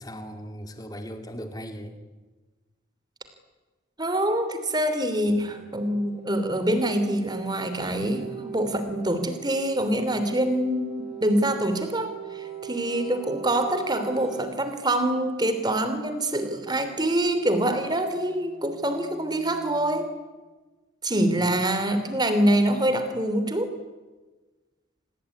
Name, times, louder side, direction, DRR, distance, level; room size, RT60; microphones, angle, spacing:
voice 1, 0.0-1.9 21.4-21.5, equal, 20° left, 6 dB, 2.4 m, -38 dB
voice 2, 4.0-10.9 11.2-20.1 21.0-23.7, right 1 dB, 20° right, 9 dB, 3.0 m, -25 dB
sound 1, 5.3-15.2 17.4-20.1, right 9 dB, ahead, 5.5 m, -41 dB
27.5 x 19.5 x 9.8 m, 1.3 s
head